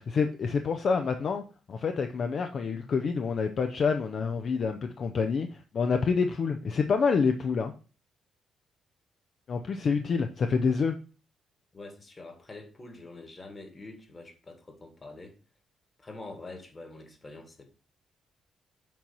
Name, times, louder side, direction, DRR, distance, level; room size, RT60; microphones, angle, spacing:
voice 1, 0.1-1.4 1.7-7.7 9.5-11.0, left 5 dB, 50° left, 6 dB, 0.5 m, -27 dB
voice 2, 11.7-15.4 16.0-17.6, left 2 dB, 30° left, 5 dB, 1.7 m, -45 dB
7.4 x 2.9 x 5.3 m, 0.37 s
cardioid pair, 90°, 0 cm